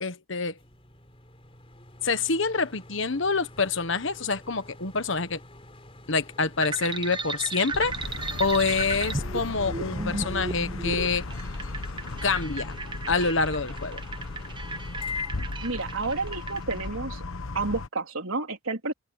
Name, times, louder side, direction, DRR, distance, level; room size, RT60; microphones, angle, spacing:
voice 1, 0.0-0.6 2.0-5.4 6.1-7.9 8.4-11.2 12.2-12.7 13.1-14.0, left 4 dB, 65° left, 1.4 m, -26 dB
sound 1, 0.6-17.0, left 4 dB, 30° left, 3.9 m, -45 dB
sound 2, 6.6-16.8, right 3 dB, 25° right, 1.0 m, -35 dB
sound 3, 7.7-17.9, left 3 dB, 85° left, 1.1 m, -36 dB
voice 2, 15.6-17.2 17.5-18.9, right 3 dB, 80° right, 3.7 m, -30 dB
open air
head